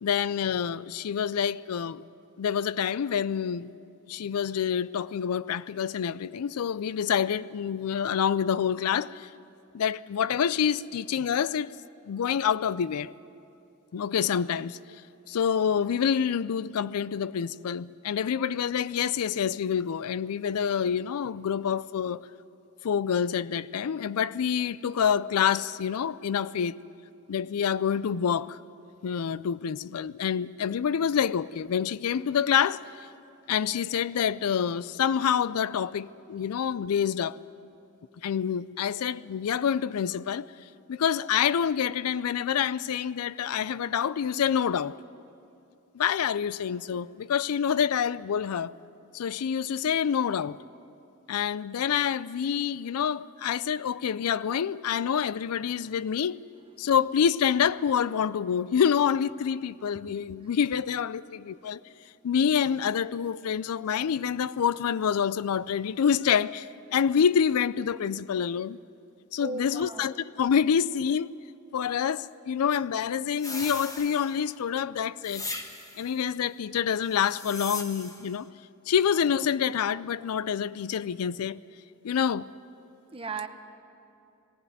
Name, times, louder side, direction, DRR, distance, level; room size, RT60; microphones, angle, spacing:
voice 1, 0.0-2.0 2.4-3.7 4.1-9.3 9.7-11.7 12.1-13.1 13.9-14.8 15.3-22.2 22.8-26.8 27.3-28.6 29.0-33.1 33.5-37.4 38.2-40.5 40.9-45.0 45.9-48.7 49.1-50.6 51.3-56.4 56.8-61.8 62.2-68.8 69.3-71.3 71.7-75.5 76.0-78.5 78.9-81.6 82.0-82.5, left 8 dB, 85° left, 0.4 m, -27 dB
voice 2, 69.4-70.1 83.1-83.5, right 4 dB, 25° right, 1.1 m, -36 dB
sound 1, 73.4-74.6 75.2-76.1 77.1-78.3, left 2 dB, 15° left, 1.2 m, -38 dB
20.5 x 15.0 x 9.3 m
head